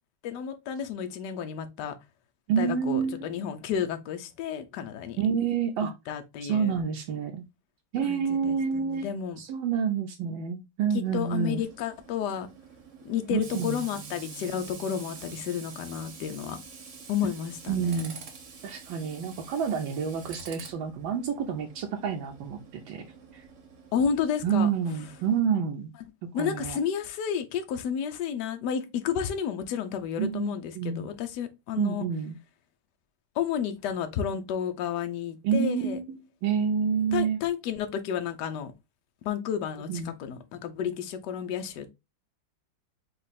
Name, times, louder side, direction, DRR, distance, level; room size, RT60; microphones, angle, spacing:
voice 1, 0.2-1.9 2.6-5.2 6.1-6.8 8.0-9.4 10.9-12.5 13.0-16.6 17.1-18.0 23.9-24.7 26.3-32.0 33.3-36.0 37.1-38.7 39.2-41.9, left 8 dB, 65° left, 1.2 m, -31 dB
voice 2, 2.5-3.3 5.2-5.9 6.4-7.4 7.9-9.1 9.4-11.6 13.3-13.9 17.7-18.1 18.6-23.0 23.3-23.4 24.4-25.9 26.3-26.8 30.2-31.1 31.8-32.4 35.4-36.0 36.4-37.4 39.9-40.2, right 7 dB, 80° right, 1.4 m, -28 dB
Tools, 11.0-25.4, right 5 dB, 50° right, 1.1 m, -47 dB
5.3 x 2.5 x 4.0 m
omnidirectional pair, 2.1 m